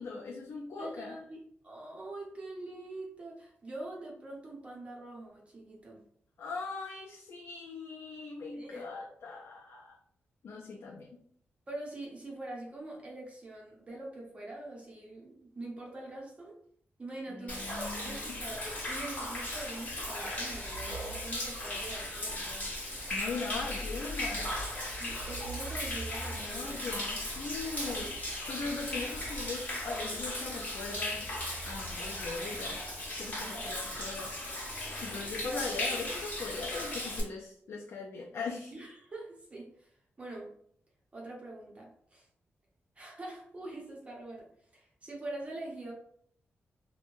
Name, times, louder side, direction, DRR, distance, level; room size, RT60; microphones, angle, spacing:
voice 1, 0.0-1.2 6.4-10.0 10.4-11.2 17.3-18.4 23.1-24.6 26.3-28.2 28.5-31.3 31.6-32.9 33.2-34.3 35.0-38.7, left 4 dB, 65° left, -1 dB, 0.4 m, -40 dB
voice 2, 0.8-6.0 8.5-8.9 11.7-16.6 17.0-22.7 25.0-26.8 33.3-33.8 35.4-35.7 38.7-40.5 41.1-42.3 43.0-44.5 44.7-45.9, right 2 dB, 30° right, -3 dB, 0.7 m, -44 dB
Human voice / Rain / Stream, 17.5-37.2, left 1 dB, 35° left, 1.1 m, -37 dB
3.0 x 2.1 x 2.6 m, 0.64 s
wide cardioid pair, 125°, 4 cm